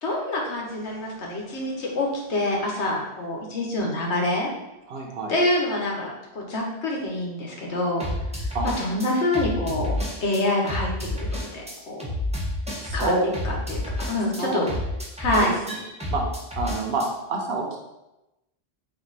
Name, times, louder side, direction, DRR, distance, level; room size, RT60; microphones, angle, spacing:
voice 1, 0.0-4.5 5.3-8.1 8.8-10.9 11.2-11.3 11.5-12.0 12.9-13.8 14.1-14.7 15.2-15.6, left 1 dB, 80° left, -1 dB, 1.3 m, -26 dB
sound 1, 0.7-0.9 8.0-10.4 10.7-17.1, left 1 dB, 5° right, 0.8 m, -30 dB
voice 2, 4.9-5.3 8.5-8.7 12.8-13.3 14.4-14.7 15.4-15.5 16.1-16.2 16.6-17.8, right 3 dB, 70° right, 1 dB, 1.0 m, -27 dB
4.5 x 2.7 x 3.9 m, 0.96 s
omnidirectional pair, 1.1 m